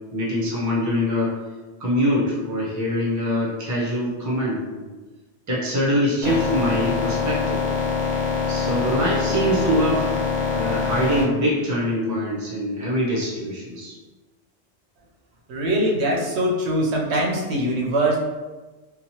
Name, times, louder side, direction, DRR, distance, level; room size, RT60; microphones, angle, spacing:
voice 1, 0.1-1.3 1.8-4.9 5.5-7.6 8.5-14.0, equal, 20° right, -5 dB, 0.5 m, -24 dB
sound 1, 6.2-11.2, left 5 dB, 50° left, 0.8 m, -24 dB
voice 2, 15.5-18.2, right 1 dB, 75° right, -2 dB, 0.9 m, -22 dB
2.9 x 2.2 x 2.7 m, 1.2 s
omnidirectional pair, 1.1 m